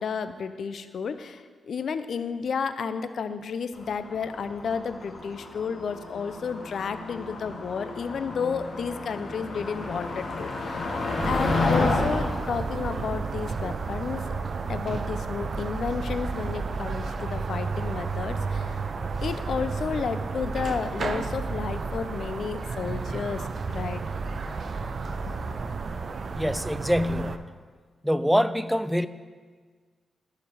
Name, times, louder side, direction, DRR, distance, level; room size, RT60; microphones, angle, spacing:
voice 1, 0.0-10.9 11.2-14.4 14.7-18.8 19.2-24.0 25.4-25.6, left 6 dB, 65° left, 11 dB, 0.5 m, -32 dB
Motor vehicle (road), 3.8-14.2, left 2 dB, 50° left, 1.9 m, -31 dB
sound 1, 11.2-27.4, right 4 dB, 55° right, 0.5 m, -32 dB
voice 2, 26.3-27.5 28.0-29.1, equal, ahead, 14 dB, 0.4 m, -25 dB
14.0 x 5.0 x 4.8 m, 1.5 s
cardioid pair, 65°, 0 cm